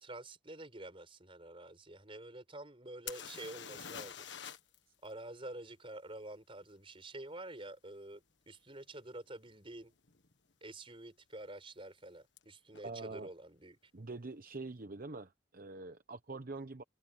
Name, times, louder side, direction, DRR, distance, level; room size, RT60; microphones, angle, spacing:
voice 1, 0.0-4.3 5.0-9.9 10.6-13.9, right 1 dB, 30° right, 4.8 m, -48 dB
sound 1, 3.1-4.8 5.0-5.1 8.5-8.6 9.3-9.5 9.7-10.3 12.4-12.5 12.7-12.8, left 8 dB, 65° left, 1.6 m, -46 dB
voice 2, 12.8-13.3 13.9-16.8, right 3 dB, 45° right, 0.9 m, -45 dB
head